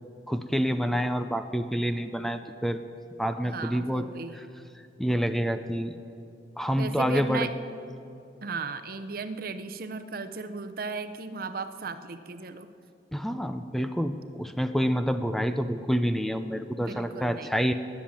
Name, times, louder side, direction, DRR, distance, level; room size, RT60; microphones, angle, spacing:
voice 1, 0.3-2.8 3.2-4.0 5.0-5.9 6.6-7.5 13.1-17.7, equal, ahead, 9 dB, 0.5 m, -27 dB
voice 2, 3.4-4.4 6.8-7.5 8.4-12.7 13.7-14.0 16.8-17.7, right 4 dB, 55° right, 11 dB, 0.8 m, -36 dB
21.0 x 7.4 x 8.7 m, 2.7 s
head